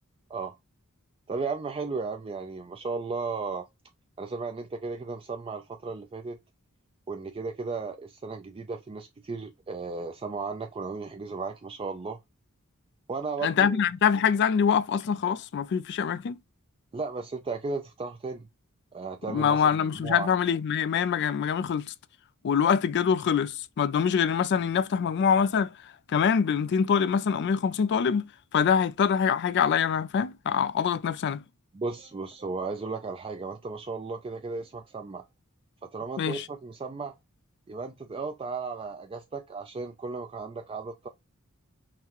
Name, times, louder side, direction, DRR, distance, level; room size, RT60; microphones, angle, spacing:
voice 1, 1.3-3.7 4.2-6.4 7.1-12.2 13.1-13.8 16.9-18.5 18.9-20.3 31.7-35.3 35.9-37.1 37.7-41.1, right 4 dB, 25° right, 0.4 m, -35 dB
voice 2, 13.4-16.4 19.3-21.9 22.4-25.7 26.1-31.4 36.2-36.4, left 7 dB, 55° left, 0.4 m, -24 dB
5.7 x 2.1 x 2.9 m
head